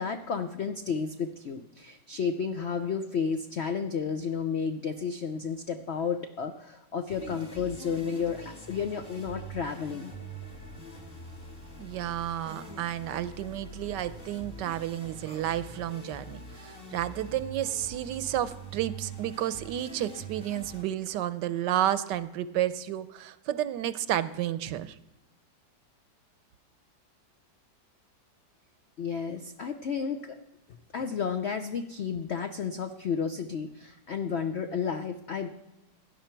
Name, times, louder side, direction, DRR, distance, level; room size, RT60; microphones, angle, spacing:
voice 1, 0.0-8.4 8.7-10.1 29.0-30.4 30.9-35.5, left 6 dB, 85° left, 7 dB, 0.5 m, -32 dB
sound 1, 7.1-20.8, right 2 dB, 30° left, 1.9 m, -44 dB
sound 2, 10.1-10.2 12.5-12.9 15.3-15.8, right 3 dB, 20° right, 1.1 m, -49 dB
voice 2, 11.8-25.0, right 12 dB, 75° right, 14 dB, 1.2 m, -31 dB
17.0 x 10.5 x 4.5 m, 1.0 s
omnidirectional pair, 2.0 m